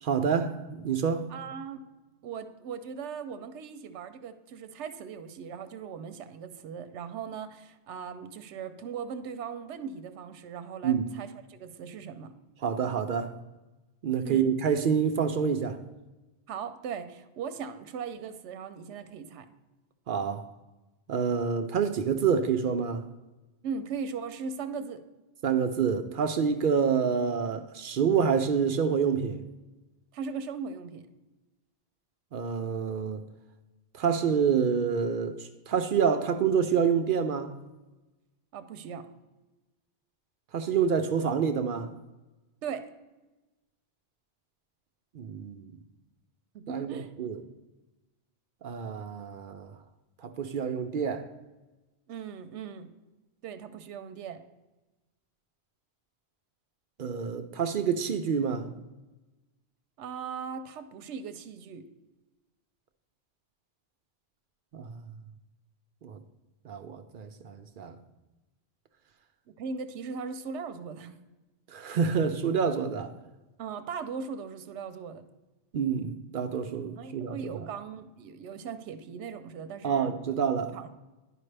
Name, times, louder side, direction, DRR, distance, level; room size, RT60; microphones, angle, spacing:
voice 1, 0.1-1.3 10.8-11.0 12.6-13.3 14.0-15.8 20.1-20.5 21.1-23.0 25.4-29.4 32.3-33.2 33.9-37.6 40.5-41.9 45.1-45.7 46.7-47.4 48.6-49.7 50.2-51.3 57.0-58.7 64.7-65.0 66.0-66.2 66.6-68.0 71.7-73.1 75.7-77.4 79.8-80.8, right 6 dB, 60° right, 0.6 m, -27 dB
voice 2, 1.3-1.8 2.2-12.3 14.2-14.5 16.5-19.5 23.6-25.0 30.1-31.1 38.5-39.1 42.6-42.9 46.5-47.1 52.1-52.9 53.4-54.4 60.0-61.9 69.5-71.1 73.6-75.2 76.9-80.4 80.7-80.9, right 6 dB, 85° right, 0.9 m, -39 dB
11.0 x 4.9 x 3.3 m
omnidirectional pair, 1.1 m